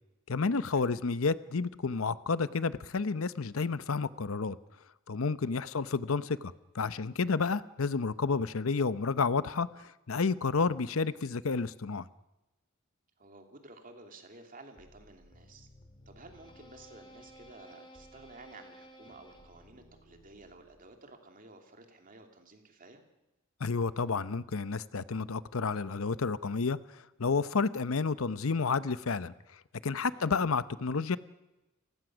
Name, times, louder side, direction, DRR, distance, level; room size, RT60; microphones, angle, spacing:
voice 1, 0.3-4.6 5.1-12.1 23.6-29.3 29.8-31.2, left 4 dB, 80° left, 0.7 m, -30 dB
voice 2, 13.2-15.7 16.1-23.0 30.0-30.2, right 2 dB, 40° right, 2.8 m, -53 dB
sound 1, 14.8-21.0, equal, 25° left, 2.7 m, -56 dB
29.5 x 16.0 x 6.2 m
head